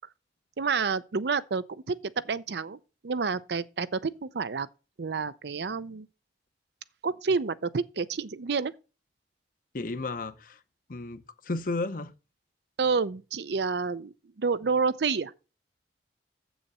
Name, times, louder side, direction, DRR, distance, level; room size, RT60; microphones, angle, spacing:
voice 1, 0.6-2.8 3.0-4.7 5.0-6.1 7.0-8.7 12.8-14.1 14.4-15.3, right 5 dB, 70° right, 0.5 m, -29 dB
voice 2, 9.7-10.6 10.9-12.1, left 2 dB, 50° left, 0.8 m, -33 dB
7.6 x 7.1 x 5.4 m
head